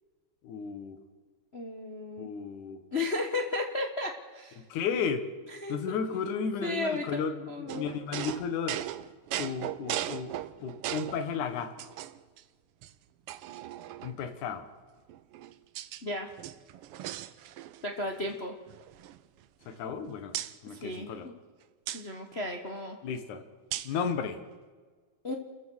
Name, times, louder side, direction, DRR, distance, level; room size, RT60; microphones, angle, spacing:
voice 1, 0.4-1.0 2.2-2.8 4.6-5.2 5.7-8.8 9.4-10.3 10.6-11.9 14.0-14.7 19.7-20.4 20.6-21.3 23.0-23.4 23.8-24.4, left 6 dB, 75° left, 9 dB, 2.9 m, -34 dB
voice 2, 1.5-2.3 2.9-4.6 5.5-7.2 7.5-7.8 16.0-16.3 17.8-18.5 20.7-21.3 21.9-23.0 25.2-25.3, left 2 dB, 55° left, 3 dB, 0.7 m, -34 dB
sound 1, 7.7-11.3 11.8-12.4 12.8-12.9 13.3-14.3 15.1-16.0 16.3-17.9 18.1-18.4 18.7-20.0 20.3-20.5 21.9-22.0 23.7-24.0, right 13 dB, 85° right, 1.3 m, -38 dB
29.5 x 14.5 x 6.4 m, 1.5 s
omnidirectional pair, 3.5 m